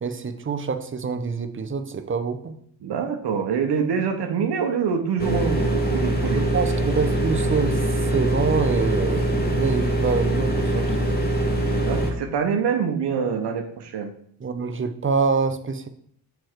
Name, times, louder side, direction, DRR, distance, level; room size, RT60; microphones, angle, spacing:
voice 1, 0.0-2.6 6.2-7.8 8.1-11.1 14.4-15.9, right 5 dB, 30° right, 8 dB, 0.7 m, -26 dB
voice 2, 2.8-6.4 11.8-14.1, right 6 dB, 80° right, 4 dB, 1.0 m, -25 dB
sound 1, 5.2-12.1, right 1 dB, 25° left, 1.4 m, -23 dB
7.0 x 4.6 x 4.6 m, 0.63 s
cardioid pair, 90°, 41 cm